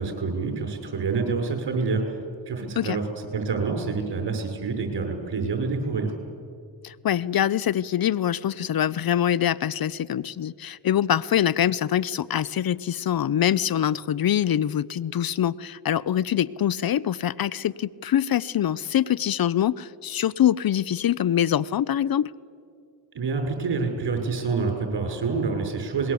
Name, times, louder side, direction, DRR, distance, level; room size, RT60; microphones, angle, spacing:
voice 1, 0.0-6.1 23.1-26.1, right 4 dB, 60° right, 4 dB, 6.1 m, -27 dB
voice 2, 6.8-22.3, left 10 dB, 50° left, 21 dB, 0.7 m, -24 dB
25.5 x 21.5 x 8.4 m, 2.3 s
cardioid pair, 70°, 45 cm